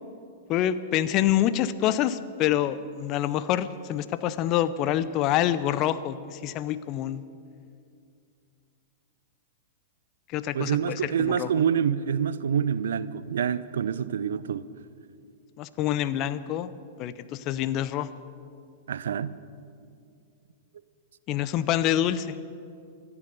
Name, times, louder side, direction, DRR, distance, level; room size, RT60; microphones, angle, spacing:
voice 1, 0.5-7.2 10.3-11.5 15.6-16.7 17.0-18.1 21.3-22.4, left 11 dB, 40° left, 14 dB, 0.7 m, -26 dB
voice 2, 10.5-14.6 18.9-19.3, right 8 dB, 70° right, 16 dB, 0.6 m, -26 dB
25.5 x 9.8 x 5.5 m, 2.4 s
figure-of-eight pair, 100°, 0 cm